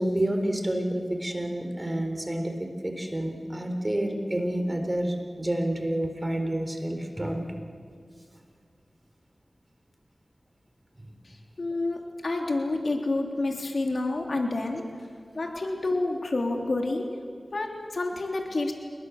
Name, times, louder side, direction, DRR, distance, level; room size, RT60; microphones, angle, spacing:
voice 1, 0.0-7.5, right 1 dB, 25° right, 4 dB, 4.1 m, -29 dB
voice 2, 11.6-14.8 15.3-17.1 17.5-18.7, left 2 dB, 70° left, 2 dB, 3.3 m, -28 dB
28.5 x 21.5 x 7.3 m, 2.1 s
wide cardioid pair, 55°, 0 cm